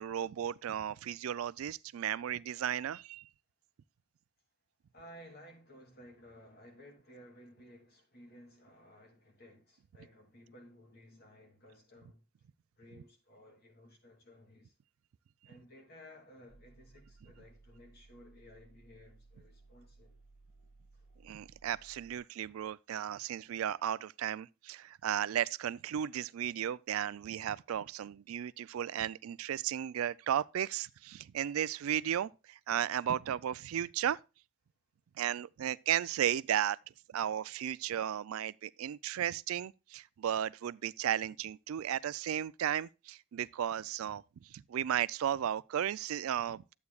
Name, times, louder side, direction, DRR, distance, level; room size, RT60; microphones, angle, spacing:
voice 1, 0.0-3.3 21.2-34.2 35.2-36.8 37.1-46.6, right 10 dB, 80° right, 0.3 m, -35 dB
voice 2, 4.9-12.2 12.8-14.8 15.4-20.2 20.9-21.1, equal, 50° left, 2.5 m, -56 dB
sound 1, 16.5-22.2, right 3 dB, 30° left, 1.8 m, -61 dB
11.5 x 8.3 x 2.3 m
head